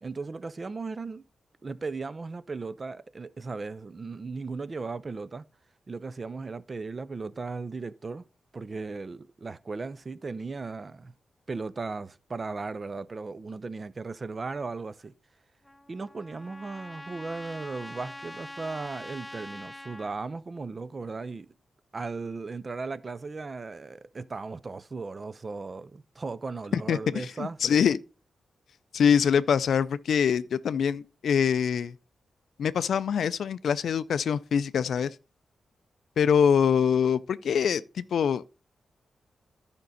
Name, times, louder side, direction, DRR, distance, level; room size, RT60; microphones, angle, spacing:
voice 1, 0.0-1.2 1.6-5.4 5.9-8.3 8.5-11.1 11.5-15.1 15.9-21.5 21.9-27.8, right 4 dB, 40° right, 0.5 m, -36 dB
Trumpet, 15.6-20.2, left 1 dB, 10° left, 0.6 m, -44 dB
voice 2, 26.7-28.0 28.9-31.9 32.6-35.1 36.2-38.4, left 7 dB, 80° left, 0.3 m, -24 dB
11.5 x 5.2 x 4.0 m
cardioid pair, 90°, 0 cm